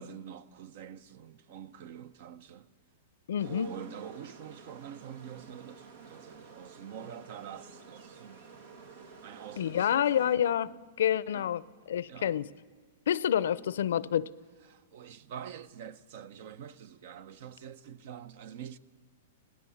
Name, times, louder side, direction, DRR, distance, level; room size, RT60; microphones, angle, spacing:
voice 1, 0.0-2.7 3.4-8.4 9.2-10.8 11.3-11.5 12.1-12.4 13.4-13.5 14.6-18.8, right 8 dB, 60° right, 0.8 m, -46 dB
voice 2, 3.3-3.7 9.6-10.7 11.0-11.6 11.9-12.5 13.1-14.3, left 10 dB, 75° left, 0.5 m, -28 dB
sound 1, 3.4-10.4, right 5 dB, 85° right, 2.6 m, -52 dB
20.5 x 18.5 x 7.1 m
hypercardioid pair, 135°, 0 cm